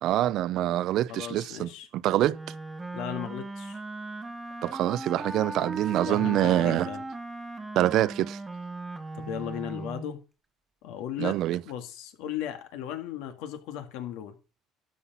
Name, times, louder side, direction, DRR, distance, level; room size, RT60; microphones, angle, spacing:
voice 1, 0.0-2.4 4.6-6.9 7.8-8.4 11.2-11.6, right 13 dB, 60° right, 0.5 m, -25 dB
voice 2, 1.1-1.9 2.9-3.8 5.9-7.0 9.1-10.2 10.8-11.4 11.7-14.4, left 10 dB, 85° left, 1.9 m, -36 dB
Wind instrument woodwind instrument, 2.3-10.2, right 2 dB, 15° right, 1.0 m, -38 dB
12.5 x 5.7 x 5.7 m
cardioid pair, 145°, 0 cm